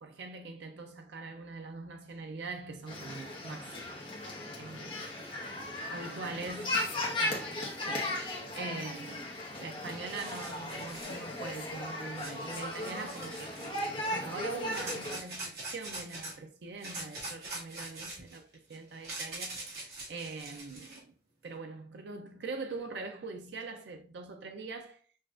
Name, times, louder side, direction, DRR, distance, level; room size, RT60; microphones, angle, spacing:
voice 1, 0.0-4.2 4.5-4.9 5.9-6.8 7.2-9.3 9.6-13.6 14.1-21.1 21.4-25.0, right 3 dB, 85° right, 0.5 m, -43 dB
sound 1, 2.9-15.2, left 1 dB, 30° left, 0.9 m, -37 dB
sound 2, 9.6-9.7 9.9-11.2 12.1-13.8 14.7-16.4 16.8-21.0, right 2 dB, 60° right, 1.7 m, -43 dB
6.2 x 2.4 x 2.5 m
head